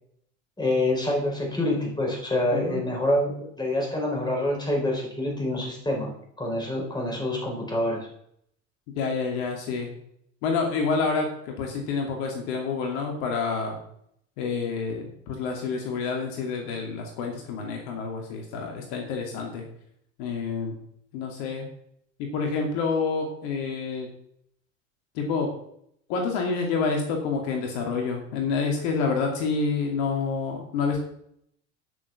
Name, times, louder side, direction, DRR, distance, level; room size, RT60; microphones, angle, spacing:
voice 1, 0.6-6.1 6.4-8.1, left 1 dB, 10° left, -1 dB, 4.9 m, -26 dB
voice 2, 2.5-2.8 8.9-9.9 10.4-13.8 14.4-19.6 20.2-20.8 21.1-21.7 22.2-24.1 25.1-25.5 26.1-31.0, left 4 dB, 65° left, 2 dB, 2.4 m, -28 dB
9.7 x 6.8 x 5.9 m, 0.71 s
hypercardioid pair, 80°, 37 cm